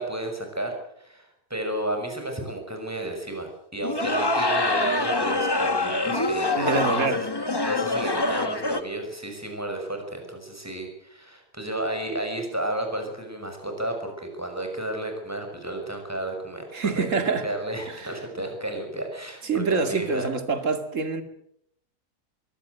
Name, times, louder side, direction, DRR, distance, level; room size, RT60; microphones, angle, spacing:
voice 1, 0.0-7.2 7.6-20.3, right 1 dB, 10° right, 6.1 m, -32 dB
sound 1, 3.8-8.8, left 2 dB, 15° left, 1.3 m, -25 dB
voice 2, 6.6-7.2 16.7-17.4 18.0-18.1 19.4-21.2, right 4 dB, 50° right, 2.7 m, -26 dB
23.5 x 17.5 x 8.0 m
omnidirectional pair, 1.7 m